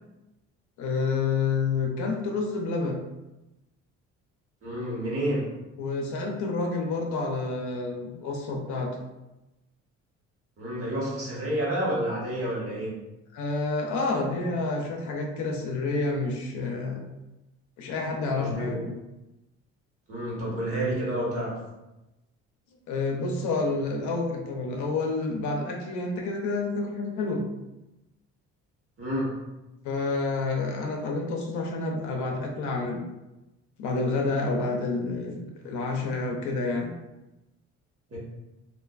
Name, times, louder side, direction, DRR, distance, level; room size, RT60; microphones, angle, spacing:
voice 1, 0.8-3.0 5.8-9.0 13.3-17.0 17.8-18.9 22.9-27.4 29.8-33.0 33.8-36.9, left 3 dB, 70° left, 1 dB, 0.6 m, -29 dB
voice 2, 4.6-5.4 10.6-12.9 18.3-18.9 20.1-21.5 29.0-29.3 38.1-38.2, right 1 dB, 45° right, -5 dB, 1.2 m, -29 dB
2.5 x 2.2 x 2.4 m, 0.99 s
supercardioid pair, 75°, 31 cm